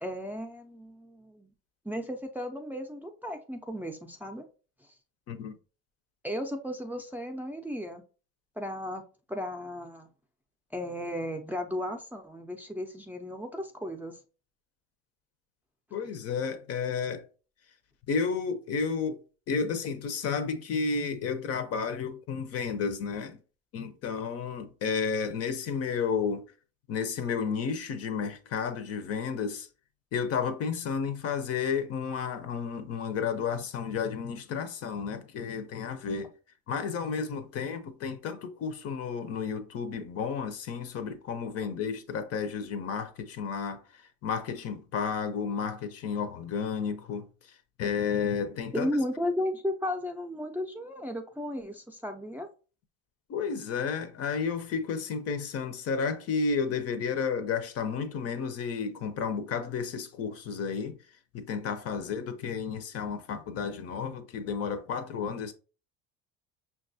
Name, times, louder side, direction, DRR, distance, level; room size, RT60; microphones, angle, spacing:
voice 1, 0.0-1.5 1.8-4.4 6.2-8.0 8.6-9.0 9.3-10.1 10.7-14.2 48.7-52.5, left 1 dB, 5° right, 0.5 m, -34 dB
voice 2, 15.9-17.2 18.1-19.2 19.5-23.4 23.7-26.4 26.9-29.7 30.1-36.3 36.7-48.9 53.3-61.0 61.3-65.5, left 6 dB, 50° left, 0.6 m, -32 dB
5.7 x 2.3 x 2.6 m
supercardioid pair, 90°, 31 cm